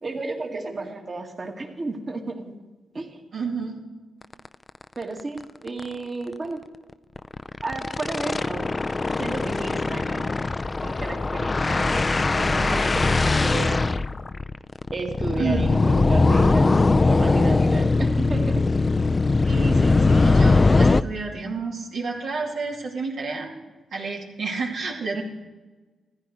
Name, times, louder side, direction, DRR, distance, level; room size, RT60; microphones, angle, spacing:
voice 1, 0.0-2.5 2.9-3.2 5.0-6.6 7.6-8.7 9.2-10.4 10.8-12.1 12.4-13.9 14.9-18.6 25.1-25.2, right 3 dB, 45° right, 2 dB, 2.0 m, -32 dB
voice 2, 3.3-3.8 15.4-15.7 19.4-23.5 23.9-25.2, right 4 dB, 75° right, -2 dB, 2.5 m, -30 dB
sound 1, 4.3-4.5 4.8-4.9 5.2-5.4 5.7-5.8 7.2-21.0, left 3 dB, 35° left, 0.4 m, -21 dB
14.5 x 10.5 x 4.7 m, 1.2 s
supercardioid pair, 50°, 0 cm